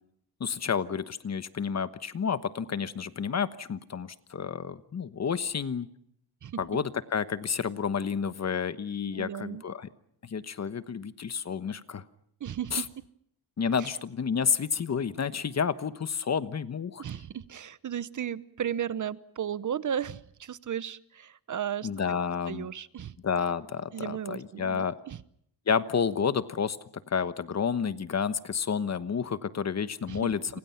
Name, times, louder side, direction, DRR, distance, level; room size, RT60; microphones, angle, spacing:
voice 1, 0.4-5.9 6.6-9.9 10.2-12.0 12.7-12.8 13.6-17.0 21.8-22.7 23.2-25.0 25.7-26.8 27.1-30.6, left 6 dB, 40° left, 13 dB, 1.2 m, -30 dB
voice 2, 9.1-9.6 12.4-12.9 13.8-13.9 17.0-22.2 22.4-23.1 23.9-25.2 30.0-30.6, right 9 dB, 45° right, 17 dB, 0.9 m, -35 dB
30.0 x 26.5 x 5.8 m, 0.70 s
cardioid pair, 130°, 42 cm